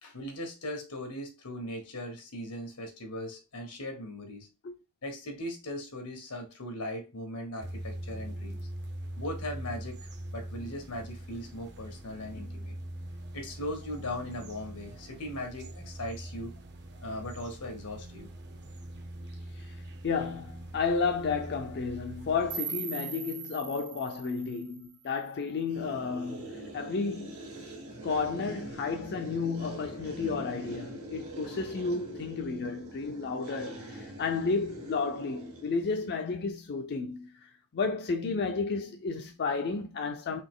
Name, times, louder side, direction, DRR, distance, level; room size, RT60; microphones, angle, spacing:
voice 1, 0.0-4.5 5.0-8.6 9.2-10.0 10.3-12.7 13.3-16.5 17.0-18.3, left 1 dB, 90° left, 1.4 m, -39 dB
sound 1, 7.6-22.6, right 1 dB, 50° right, 0.7 m, -42 dB
voice 2, 20.0-27.4 28.0-40.4, left 4 dB, 50° left, 0.5 m, -32 dB
sound 2, 22.5-25.5, right 7 dB, 20° right, 0.4 m, -40 dB
sound 3, 25.7-36.2, right 1 dB, 80° right, 1.5 m, -44 dB
4.0 x 2.9 x 3.7 m
head